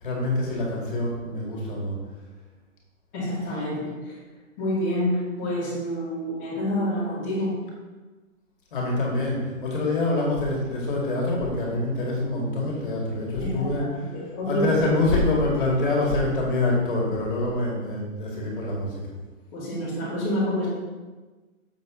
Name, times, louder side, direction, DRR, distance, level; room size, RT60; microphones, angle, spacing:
voice 1, 0.0-1.9 8.7-13.8 14.5-19.0, left 2 dB, 40° left, -3 dB, 2.3 m, -25 dB
voice 2, 3.1-4.2 4.6-7.6 13.4-14.7 19.5-20.7, left 1 dB, 15° left, -11 dB, 1.4 m, -28 dB
7.3 x 6.8 x 3.8 m, 1.3 s
hypercardioid pair, 180°, 40 cm